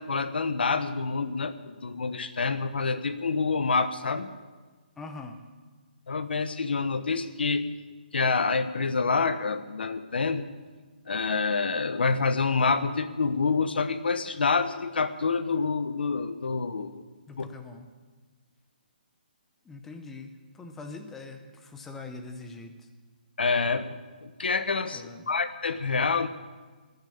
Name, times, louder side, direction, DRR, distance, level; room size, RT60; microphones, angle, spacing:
voice 1, 0.0-4.3 6.1-7.7 8.1-10.4 11.1-17.0 17.4-17.5 23.4-26.3, left 4 dB, 85° left, 12 dB, 1.1 m, -27 dB
voice 2, 5.0-5.4 17.3-17.8 19.6-22.9 24.9-25.3, left 3 dB, 5° left, 6 dB, 0.6 m, -42 dB
17.0 x 10.5 x 7.0 m, 1.4 s
hypercardioid pair, 175°, 5 cm